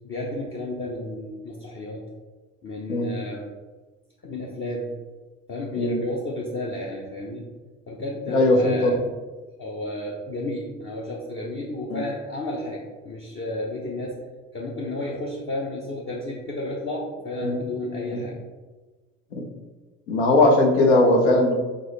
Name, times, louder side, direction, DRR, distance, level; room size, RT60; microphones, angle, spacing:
voice 1, 0.0-2.0 2.6-3.5 4.2-4.9 5.5-7.5 7.9-9.0 9.6-14.2 14.5-18.3, left 1 dB, 30° left, -3 dB, 0.8 m, -32 dB
voice 2, 8.3-9.0 11.9-12.0 17.4-17.6 18.1-18.2 19.3-19.5 20.1-21.5, left 2 dB, 75° left, 2 dB, 1.0 m, -19 dB
3.9 x 3.8 x 3.2 m, 1.3 s
hypercardioid pair, 70°, 38 cm